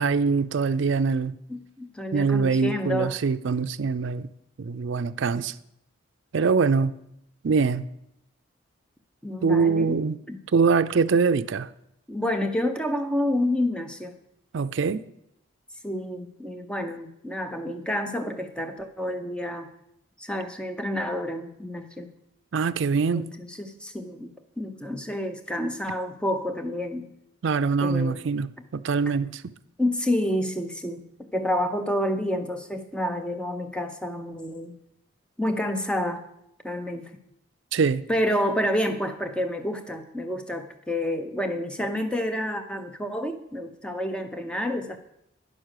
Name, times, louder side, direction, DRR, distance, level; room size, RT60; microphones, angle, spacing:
voice 1, 0.0-1.3 2.1-4.3 4.6-5.5 6.3-6.9 7.4-7.8 9.4-10.2 10.5-11.7 14.5-15.0 22.5-23.3 27.4-29.4 37.7-38.0, right 5 dB, 60° right, 0.4 m, -23 dB
voice 2, 1.5-3.1 9.2-10.0 10.3-10.4 12.1-14.1 15.8-19.7 20.2-22.1 23.1-27.1 27.8-28.2 29.8-34.7 35.4-36.2 36.6-37.1 38.1-45.0, left 1 dB, 5° left, 0.6 m, -29 dB
9.9 x 6.1 x 6.5 m
head